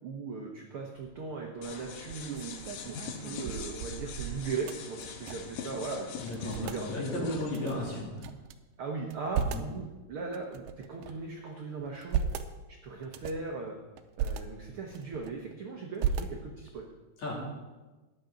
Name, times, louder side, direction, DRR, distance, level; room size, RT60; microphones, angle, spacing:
voice 1, 0.0-7.3 8.8-12.3 12.8-13.8 14.2-16.8, right 4 dB, 70° right, 1 dB, 1.3 m, -38 dB
sound 1, 1.0-1.4 1.9-5.6 5.9-6.0 6.2-6.8 7.5-8.6 9.0-9.8 10.3-11.3 11.8-12.5 13.0-13.5 14.0-14.4 14.9-15.5 16.0-16.7, right 7 dB, 85° right, 2.2 m, -36 dB
sound 2, 1.6-8.0, left 6 dB, 75° left, 2.6 m, -43 dB
voice 2, 6.2-8.2 9.5-9.6 17.2-17.3, left 1 dB, 55° left, -4 dB, 4.2 m, -34 dB
14.0 x 10.5 x 3.9 m, 1.2 s
omnidirectional pair, 3.9 m